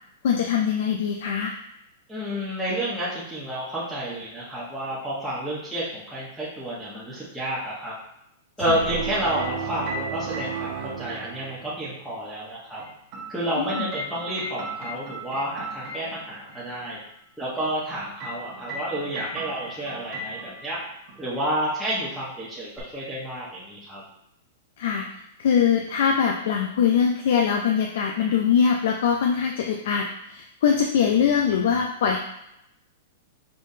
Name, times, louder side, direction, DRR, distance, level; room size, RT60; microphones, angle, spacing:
voice 1, 0.2-1.5 13.6-13.9 24.8-25.0 25.4-32.2, left 7 dB, 70° left, 2 dB, 0.5 m, -22 dB
voice 2, 2.1-7.9 8.6-12.8 13.3-17.0 17.4-20.8 21.2-24.0, right 1 dB, 5° right, -10 dB, 1.1 m, -30 dB
sound 1, 8.6-11.6 12.8-16.6 17.6-20.8 21.1-21.5 22.8-22.9, right 1 dB, 40° right, 1.1 m, -38 dB
sound 2, 8.6-11.9, right 7 dB, 70° right, 0.7 m, -33 dB
5.2 x 3.5 x 2.7 m, 0.83 s
hypercardioid pair, 140°, 0 cm